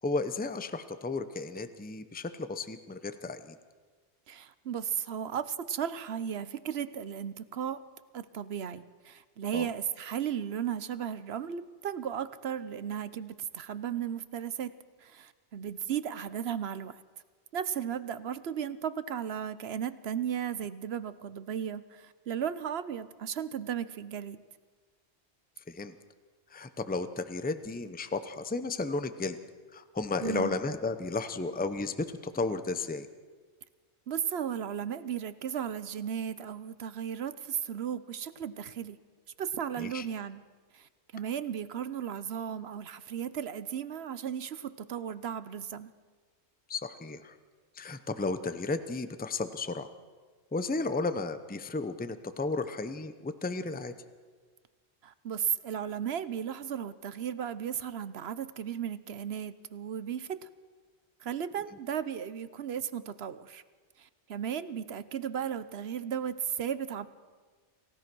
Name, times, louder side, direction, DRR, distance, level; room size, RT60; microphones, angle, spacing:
voice 1, 0.0-3.6 9.5-9.7 25.6-26.0 26.5-29.4 29.7-33.1 39.8-40.1 46.7-47.4 47.7-49.9 50.5-53.9, left 3 dB, 10° left, 10 dB, 0.7 m, -33 dB
voice 2, 4.3-7.8 8.1-14.7 15.0-17.0 17.5-24.4 30.2-30.5 34.1-39.0 39.4-40.4 40.7-45.9 55.0-60.5 61.2-63.6 64.0-67.1, right 8 dB, 65° right, 14 dB, 1.0 m, -35 dB
28.0 x 16.0 x 6.2 m, 1.5 s
omnidirectional pair, 1.2 m